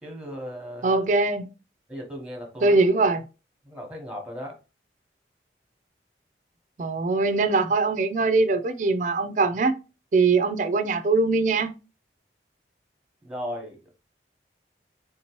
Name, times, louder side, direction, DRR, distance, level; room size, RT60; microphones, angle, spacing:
voice 1, 0.0-1.0 1.9-2.8 3.6-4.6 13.2-13.8, equal, 5° right, 0.9 m, -36 dB
voice 2, 0.8-1.5 2.6-3.2 6.8-9.7 10.1-11.8, right 3 dB, 45° right, 0.4 m, -22 dB
3.5 x 2.9 x 2.9 m
head